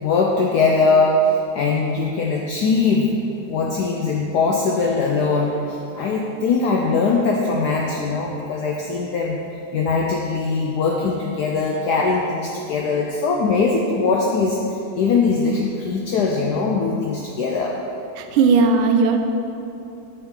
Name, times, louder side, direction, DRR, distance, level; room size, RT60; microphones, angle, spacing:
voice 1, 0.0-1.2 1.5-3.1 3.5-9.4 9.7-14.6 14.9-17.8, left 4 dB, 85° left, -1 dB, 0.9 m, -21 dB
voice 2, 18.2-19.2, right 4 dB, 85° right, 5 dB, 1.4 m, -16 dB
6.3 x 6.0 x 3.7 m, 2.8 s
omnidirectional pair, 2.3 m